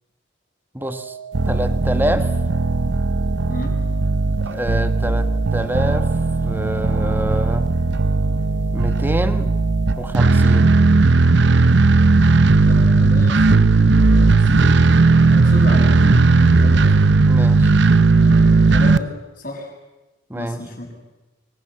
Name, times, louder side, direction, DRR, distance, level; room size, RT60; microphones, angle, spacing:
voice 1, 0.7-1.2 1.4-2.4 4.4-6.1 6.4-7.8 8.7-9.5 10.0-10.8 17.2-17.7 20.3-20.6, right 1 dB, 10° right, 10 dB, 1.3 m, -26 dB
sound 1, 0.8-10.8, right 8 dB, 85° right, 3.0 m, -37 dB
sound 2, 1.3-19.0, right 3 dB, 65° right, 0.8 m, -16 dB
voice 2, 3.5-3.8 12.6-14.9 15.2-16.9 18.1-19.7 20.3-20.9, left 1 dB, 45° left, 1 dB, 6.5 m, -31 dB
25.0 x 23.5 x 7.7 m, 1.1 s
head